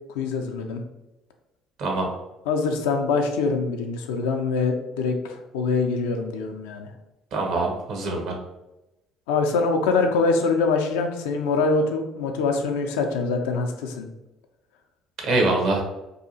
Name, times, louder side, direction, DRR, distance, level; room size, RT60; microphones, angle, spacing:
voice 1, 0.2-0.8 2.5-6.9 9.3-14.1, left 4 dB, 75° left, 4 dB, 0.3 m, -24 dB
voice 2, 1.8-2.1 7.3-8.4 15.2-15.8, right 2 dB, 60° right, 1 dB, 0.7 m, -24 dB
2.7 x 2.3 x 2.6 m, 0.97 s
hypercardioid pair, 55°, 0 cm